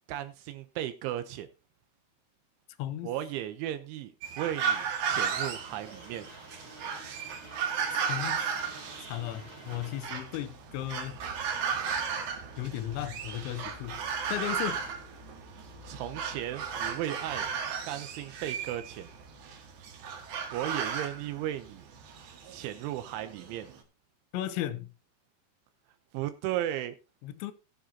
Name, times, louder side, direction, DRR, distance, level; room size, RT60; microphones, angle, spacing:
voice 1, 0.1-1.5 3.0-6.3 15.9-17.5 17.8-19.1 20.5-21.9 22.5-23.7 26.1-27.0, right 12 dB, 80° right, 3.0 m, -35 dB
voice 2, 2.8-3.1 8.1-8.6 9.0-11.2 12.6-14.0 14.3-14.9 24.3-24.9 27.2-27.5, left 13 dB, 80° left, 2.9 m, -35 dB
sound 1, 4.2-23.8, right 6 dB, 60° right, 3.4 m, -35 dB
sound 2, 5.0-10.1, right 1 dB, 20° right, 4.3 m, -49 dB
18.5 x 7.6 x 2.8 m
omnidirectional pair, 5.7 m